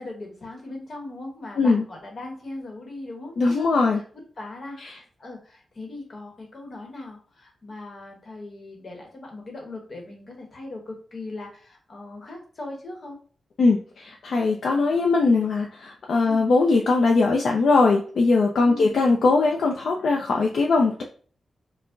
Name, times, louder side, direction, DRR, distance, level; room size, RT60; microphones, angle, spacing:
voice 1, 0.0-4.0 4.4-13.2 16.2-16.4 18.6-19.0, left 2 dB, 40° left, 1 dB, 0.9 m, -39 dB
voice 2, 3.4-4.0 4.8-4.9 13.6-21.0, left 3 dB, 60° left, 0 dB, 0.4 m, -20 dB
4.3 x 2.0 x 2.5 m, 0.43 s
wide cardioid pair, 175°, 0 cm